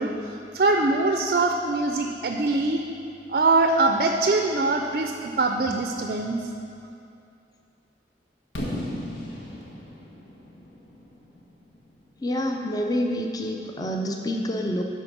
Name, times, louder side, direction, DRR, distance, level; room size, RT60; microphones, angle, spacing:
voice 1, 0.0-2.8 3.3-6.4, right 3 dB, 50° right, 4 dB, 0.4 m, -23 dB
Fireworks, 8.5-12.4, left 1 dB, 85° left, 1.5 m, -36 dB
voice 2, 12.2-14.8, equal, 20° left, 2 dB, 0.5 m, -27 dB
10.0 x 4.2 x 6.0 m, 2.6 s
head